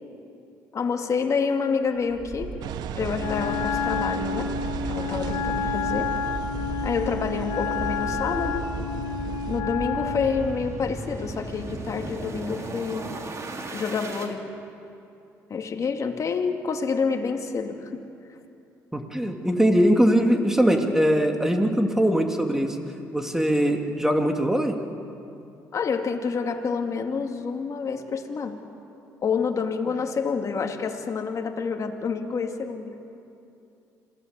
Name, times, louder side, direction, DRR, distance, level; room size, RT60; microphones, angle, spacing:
voice 1, 0.7-2.6 2.9-4.5 4.8-6.1 6.8-8.7 9.5-13.2 13.7-14.4 15.5-17.9 25.7-28.6 29.2-32.9, left 5 dB, 50° left, 4 dB, 2.4 m, -28 dB
sound 1, 2.1-14.3, right 2 dB, 45° right, 3.2 m, -36 dB
Engine, 2.6-9.6, right 10 dB, 75° right, 0.9 m, -36 dB
Wind instrument woodwind instrument, 3.2-10.4, left 6 dB, 80° left, 3.2 m, -30 dB
voice 2, 18.9-22.8 23.1-24.8, equal, 5° right, 3 dB, 2.7 m, -21 dB
27.0 x 17.5 x 8.2 m, 2.7 s
supercardioid pair, 70°, 7 cm